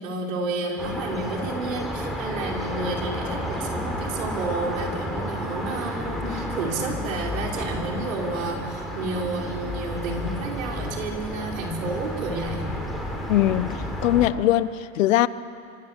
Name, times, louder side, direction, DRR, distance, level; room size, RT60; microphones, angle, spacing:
voice 1, 0.0-12.7, right 2 dB, 80° right, 1 dB, 5.1 m, -31 dB
sound 1, 0.8-14.3, equal, ahead, 4.3 m, -31 dB
voice 2, 13.3-13.7 14.0-15.3, left 14 dB, 75° left, 16 dB, 1.1 m, -20 dB
26.0 x 24.0 x 8.2 m, 2.4 s
supercardioid pair, 120°, 39 cm